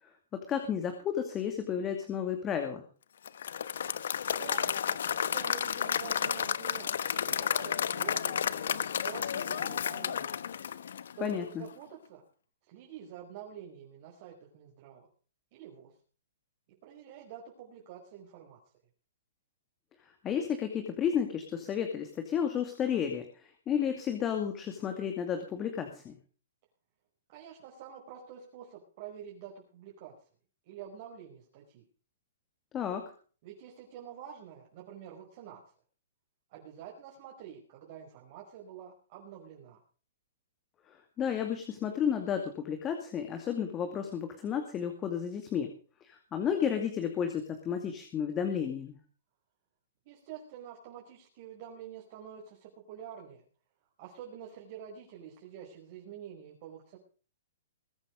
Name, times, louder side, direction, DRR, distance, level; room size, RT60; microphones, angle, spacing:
voice 1, 0.3-2.8 11.2-11.6 20.2-26.1 32.7-33.0 41.2-45.7 46.0-49.0, left 8 dB, 20° left, 5 dB, 2.4 m, -32 dB
Applause / Crowd, 3.3-11.4, left 8 dB, 75° left, 1.1 m, -32 dB
voice 2, 4.3-4.7 5.0-10.3 11.2-12.2 12.7-15.1 15.5-15.9 16.8-18.6 27.3-30.1 30.6-31.8 33.4-35.6 36.5-39.8 50.0-53.4 54.0-57.0, right 8 dB, 40° right, -1 dB, 5.1 m, -47 dB
21.5 x 9.1 x 5.3 m, 0.40 s
hypercardioid pair, 155°, 0 cm